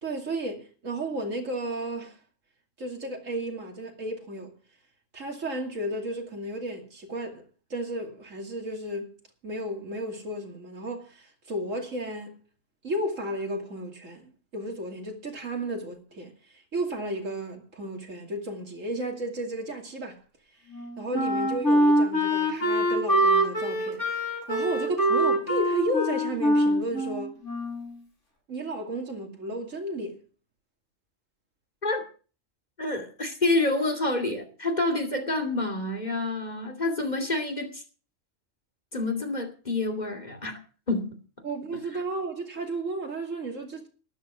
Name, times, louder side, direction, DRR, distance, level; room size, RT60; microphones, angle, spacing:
voice 1, 0.0-2.2 2.8-4.5 5.1-7.4 7.7-9.1 9.4-12.4 12.8-20.2 21.0-24.0 24.5-27.4 28.5-30.2 41.4-43.9, right 1 dB, 75° right, 2.9 m, -33 dB
Wind instrument woodwind instrument, 20.7-28.0, equal, 65° left, 5.0 m, -24 dB
voice 2, 32.8-37.8 38.9-40.5 40.9-41.2, left 2 dB, 35° left, 2.7 m, -28 dB
12.5 x 11.5 x 6.1 m
omnidirectional pair, 1.3 m